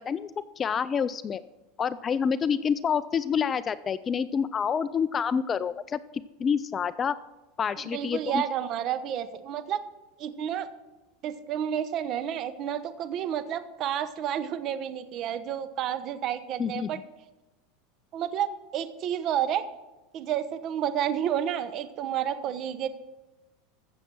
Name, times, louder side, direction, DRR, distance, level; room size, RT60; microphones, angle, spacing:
voice 1, 0.0-1.4 1.8-6.0 6.4-7.2 7.6-8.4 16.6-16.9, left 7 dB, 25° left, 16 dB, 0.4 m, -28 dB
voice 2, 7.9-9.8 10.2-10.7 11.2-17.0 18.1-19.6 20.1-22.9, right 10 dB, 45° right, 12 dB, 1.0 m, -30 dB
15.0 x 7.2 x 6.2 m, 1.1 s
supercardioid pair, 125°, 0 cm